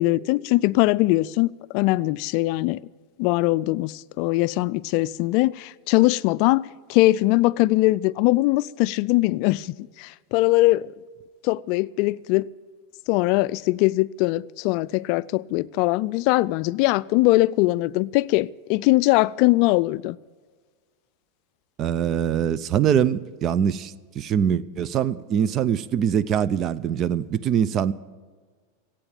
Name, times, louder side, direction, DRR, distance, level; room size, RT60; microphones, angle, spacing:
voice 1, 0.0-2.8 3.2-10.9 11.4-12.5 13.1-20.2, left 19 dB, 55° left, 0.4 m, -21 dB
voice 2, 21.8-27.9, right 8 dB, 35° right, 0.5 m, -23 dB
15.5 x 9.0 x 8.9 m
supercardioid pair, 135°, 0 cm